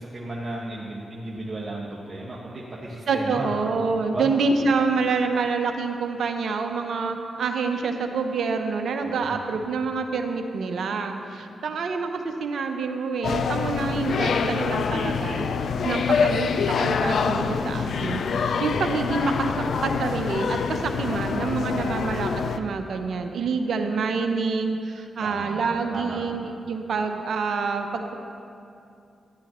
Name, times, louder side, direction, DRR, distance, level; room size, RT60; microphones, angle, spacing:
voice 1, 0.0-3.5 4.0-4.3 9.0-9.4 25.2-26.2, right 2 dB, 35° right, -5 dB, 1.5 m, -34 dB
voice 2, 3.1-15.5 15.8-16.5 16.8-19.5 19.8-28.1, right 4 dB, 70° right, 5 dB, 0.7 m, -27 dB
sound 1, 13.2-22.6, left 5 dB, 70° left, 0.4 m, -25 dB
13.5 x 10.0 x 3.0 m, 2.6 s
supercardioid pair, 40°, 0 cm